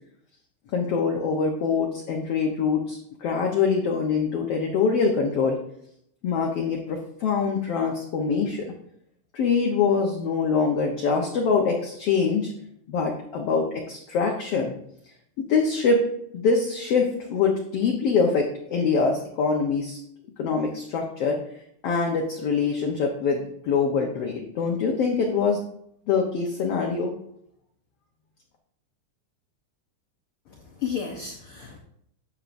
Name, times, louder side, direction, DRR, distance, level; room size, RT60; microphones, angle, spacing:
voice 1, 0.7-5.6 6.2-8.7 9.3-12.5 12.9-14.7 15.4-16.0 16.3-20.0 20.4-21.4 21.8-25.6 26.1-27.1, left 5 dB, 65° left, 1 dB, 1.6 m, -24 dB
voice 2, 30.5-31.8, left 7 dB, 85° left, 2 dB, 1.2 m, -33 dB
10.0 x 7.2 x 2.6 m, 0.70 s
omnidirectional pair, 3.7 m